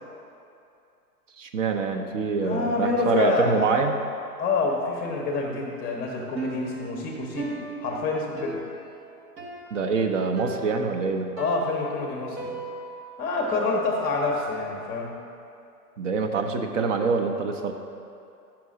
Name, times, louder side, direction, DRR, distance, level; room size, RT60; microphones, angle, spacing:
voice 1, 1.4-4.0 9.7-11.3 16.0-17.7, right 4 dB, 50° right, 5 dB, 0.7 m, -25 dB
voice 2, 2.4-3.7 4.4-8.6 11.4-12.6 13.2-15.1, left 3 dB, 20° left, 0 dB, 0.7 m, -27 dB
Piano, 6.4-14.2, right 1 dB, 90° right, 1.3 m, -38 dB
5.9 x 5.4 x 6.2 m, 2.6 s
hypercardioid pair, 125°, 48 cm